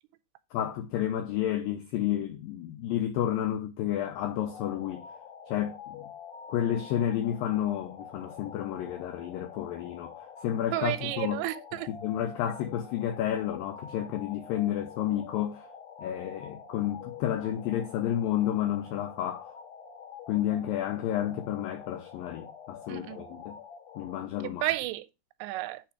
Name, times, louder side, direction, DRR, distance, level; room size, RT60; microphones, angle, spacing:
voice 1, 0.5-5.1 5.5-6.1 6.5-11.4 11.9-15.7 16.0-19.5 20.3-23.6 24.0-24.7, left 11 dB, 85° left, 2.0 m, -31 dB
radio signal sound, 4.4-24.3, left 7 dB, 70° left, 2.9 m, -47 dB
voice 2, 10.7-11.9 22.9-23.2 24.4-25.1 25.4-25.8, right 16 dB, 85° right, 2.7 m, -32 dB
8.7 x 3.5 x 4.7 m
omnidirectional pair, 4.8 m